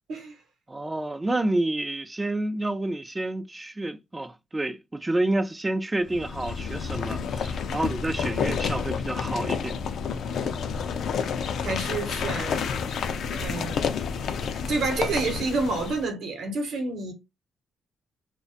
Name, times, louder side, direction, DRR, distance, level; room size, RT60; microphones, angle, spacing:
voice 1, 0.7-9.8, right 2 dB, 15° right, 0.3 m, -29 dB
sound 1, 6.1-16.1, left 6 dB, 65° left, 0.3 m, -30 dB
voice 2, 11.6-12.7 13.3-14.0 14.7-17.1, right 3 dB, 70° right, 0.8 m, -29 dB
2.4 x 2.1 x 2.6 m
cardioid pair, 90°, 0 cm